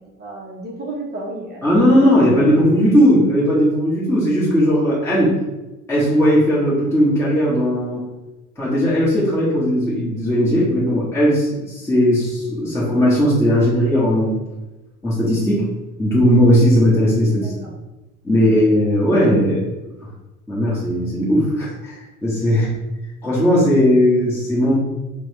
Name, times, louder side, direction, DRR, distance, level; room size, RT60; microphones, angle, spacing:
voice 1, 0.0-2.4 17.4-17.7 18.3-18.5 22.5-22.8, right 2 dB, 20° right, -2 dB, 0.7 m, -33 dB
voice 2, 1.6-5.3 5.9-8.0 8.6-14.4 15.0-15.6 16.0-17.5 18.2-19.6 20.5-22.0 22.2-22.7 23.2-24.8, equal, 5° left, -8 dB, 1.2 m, -17 dB
4.7 x 2.2 x 3.0 m, 1.0 s
figure-of-eight pair, 80°, 44 cm